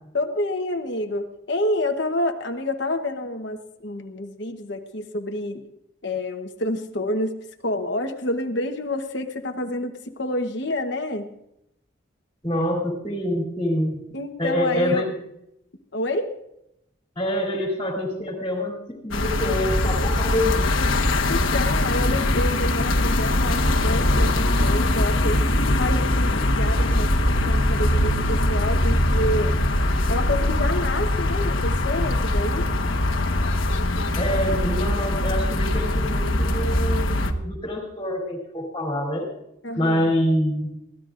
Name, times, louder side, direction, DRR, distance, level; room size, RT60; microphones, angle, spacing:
voice 1, 0.1-5.6 6.0-7.3 7.6-11.3 14.1-15.1 15.9-16.4 21.2-25.4 25.8-29.6 30.1-32.7 39.6-40.1, left 1 dB, 60° left, 5 dB, 1.1 m, -28 dB
voice 2, 12.4-14.0 14.4-15.0 17.1-20.6 34.1-39.3 39.8-40.7, left 1 dB, 20° left, -2 dB, 3.3 m, -26 dB
sound 1, 19.1-37.3, left 1 dB, 80° left, 1.3 m, -22 dB
23.5 x 16.5 x 2.5 m, 0.81 s
head